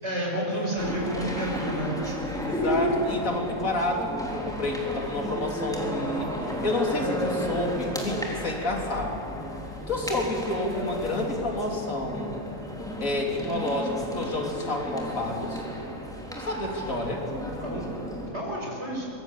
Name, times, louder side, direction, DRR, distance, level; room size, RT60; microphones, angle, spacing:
voice 1, 0.0-2.3 17.6-17.9 18.3-19.1, right 1 dB, 50° right, -2 dB, 7.2 m, -30 dB
sound 1, 0.8-18.3, equal, ahead, 3.4 m, -33 dB
voice 2, 2.4-9.2 9.9-12.3 13.0-15.7 16.3-17.3, left 1 dB, 70° left, 1 dB, 3.6 m, -29 dB
24.5 x 22.0 x 8.3 m, 2.7 s
omnidirectional pair, 1.5 m